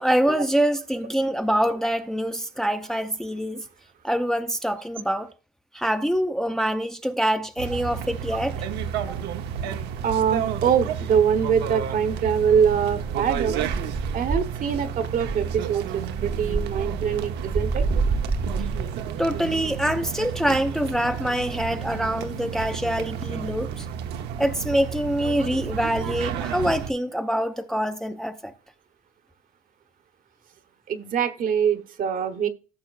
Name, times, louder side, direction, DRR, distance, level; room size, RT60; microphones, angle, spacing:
voice 1, 0.0-3.6 4.0-5.3 5.7-8.6 9.1-9.2 19.2-23.9 24.4-28.5, equal, 5° left, 0.6 m, -25 dB
sound 1, 7.6-26.9, right 8 dB, 85° right, 0.8 m, -31 dB
voice 2, 10.0-13.5 14.1-17.8 30.9-32.5, right 7 dB, 55° right, 1.0 m, -23 dB
sound 2, 12.6-14.9 15.2-19.0, right 3 dB, 25° right, 0.8 m, -28 dB
13.5 x 6.1 x 2.4 m
cardioid pair, 110°, 17 cm